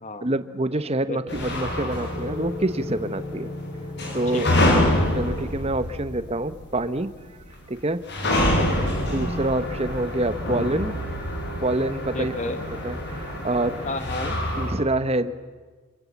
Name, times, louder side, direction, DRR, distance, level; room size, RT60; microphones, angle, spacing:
voice 1, 0.2-3.5 4.1-4.5 5.2-7.1 7.7-8.0 9.0-11.0 11.6-12.3 12.7-13.8 14.6-15.3, right 1 dB, 25° right, 11 dB, 1.0 m, -26 dB
voice 2, 1.1-1.4 4.3-4.8 8.2-8.8 12.1-12.6 13.8-14.4, left 2 dB, 30° left, 9 dB, 1.4 m, -32 dB
sound 1, 1.3-6.8 7.0-7.2 7.9-14.7, left 1 dB, 50° left, 6.7 m, -26 dB
27.5 x 24.5 x 7.3 m, 1.4 s
head